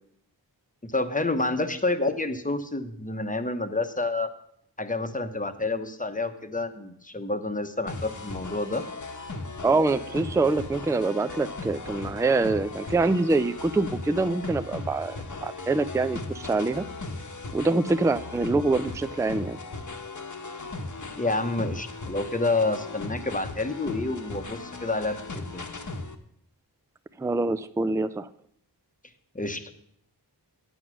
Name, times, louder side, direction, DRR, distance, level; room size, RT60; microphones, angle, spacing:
voice 1, 0.8-4.3 4.8-8.8 21.2-25.7 29.3-29.7, left 2 dB, 20° left, 8 dB, 0.9 m, -29 dB
sound 1, 7.9-26.1, left 3 dB, 45° left, 1.0 m, -37 dB
voice 2, 9.6-16.8 17.5-19.6 27.2-28.3, right 3 dB, 10° right, 13 dB, 0.4 m, -25 dB
9.4 x 8.1 x 6.1 m, 0.68 s
wide cardioid pair, 80°, 41 cm